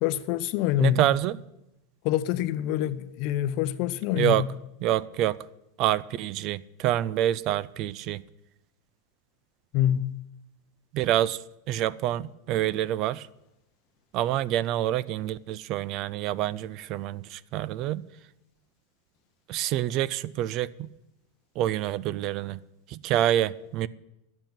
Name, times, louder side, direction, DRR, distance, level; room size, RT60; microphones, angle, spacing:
voice 1, 0.0-1.0 2.0-4.5 9.7-10.2, left 12 dB, 50° left, 0.7 m, -26 dB
voice 2, 0.8-1.4 4.2-4.4 4.8-5.4 5.8-8.2 10.9-11.4 11.7-13.3 14.1-18.0 19.5-20.9 21.6-22.6 22.9-23.9, right 13 dB, 40° right, 0.4 m, -27 dB
11.0 x 7.9 x 8.8 m
supercardioid pair, 150°, 0 cm